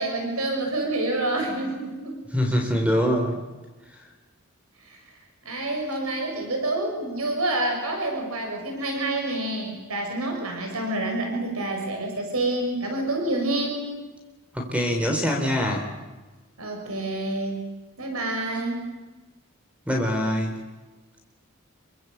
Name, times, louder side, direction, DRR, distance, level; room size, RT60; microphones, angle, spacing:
voice 1, 0.0-2.2 4.9-5.0 5.4-13.8 16.6-17.6 18.0-18.9, right 2 dB, 85° right, 2 dB, 6.7 m, -28 dB
voice 2, 2.3-3.4 14.5-15.9 19.9-20.6, equal, 5° right, 3 dB, 3.7 m, -24 dB
28.5 x 24.0 x 8.2 m, 1.2 s
head